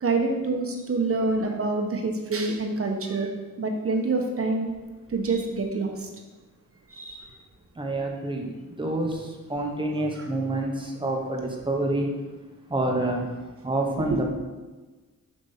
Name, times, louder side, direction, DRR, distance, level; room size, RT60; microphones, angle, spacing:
voice 1, 0.0-4.7 5.1-6.1 6.9-7.3 14.0-14.2, right 3 dB, 45° right, 3 dB, 1.2 m, -27 dB
voice 2, 7.8-8.5 8.8-9.1 9.5-10.7 11.0-12.1 12.7-13.2 13.6-14.2, right 2 dB, 15° right, 1 dB, 1.2 m, -27 dB
7.4 x 5.2 x 5.7 m, 1.2 s
wide cardioid pair, 160°, 33 cm